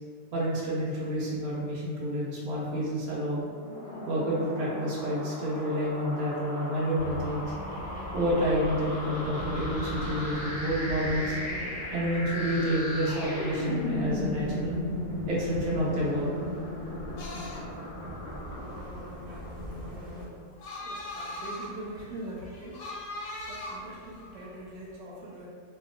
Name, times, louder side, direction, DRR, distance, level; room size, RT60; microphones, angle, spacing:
voice 1, 0.3-3.5 4.1-7.4 8.1-11.4 11.9-14.7 15.3-16.3, equal, 60° right, -6 dB, 1.2 m, -29 dB
sound 1, 3.5-19.8, left 1 dB, 45° left, 1.0 m, -37 dB
sound 2, 6.9-20.2, equal, 5° left, 0.6 m, -41 dB
sound 3, 17.2-24.9, left 1 dB, 75° left, 1.1 m, -41 dB
voice 2, 20.8-22.7 23.5-25.5, right 1 dB, 90° right, -5 dB, 1.3 m, -42 dB
2.9 x 2.9 x 2.4 m, 2.1 s
omnidirectional pair, 1.8 m